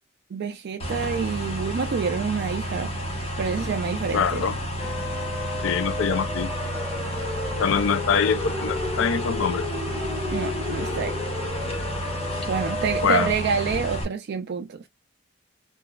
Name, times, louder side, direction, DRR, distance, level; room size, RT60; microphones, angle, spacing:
voice 1, 0.3-2.9 3.4-4.4 10.3-11.2 12.5-14.8, right 6 dB, 55° right, 0.3 m, -27 dB
sound 1, 0.8-14.0, equal, 30° left, 0.9 m, -31 dB
voice 2, 4.1-4.6 5.6-6.5 7.6-9.7 13.0-13.3, left 6 dB, 70° left, 0.3 m, -24 dB
sound 2, 4.8-13.3, left 2 dB, 15° left, 1.2 m, -32 dB
2.8 x 2.3 x 2.2 m
head